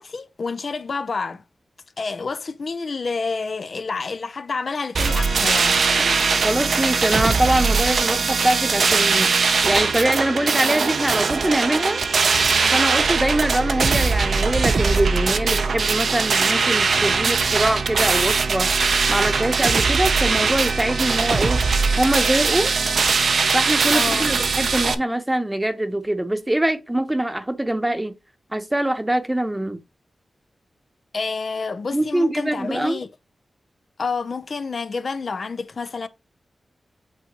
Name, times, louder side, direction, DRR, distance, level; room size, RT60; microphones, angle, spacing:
voice 1, 0.0-1.4 2.0-6.4 23.9-24.3 31.1-33.1 34.0-36.1, left 4 dB, 55° left, 0.6 m, -29 dB
sound 1, 4.9-24.9, right 4 dB, 70° right, 0.7 m, -20 dB
voice 2, 6.4-9.3 9.6-12.0 12.7-18.7 19.1-21.6 22.0-22.7 23.5-28.1 28.5-29.8 31.9-33.0, right 1 dB, 10° right, 0.9 m, -23 dB
8.6 x 3.8 x 3.0 m
wide cardioid pair, 85°, 0 cm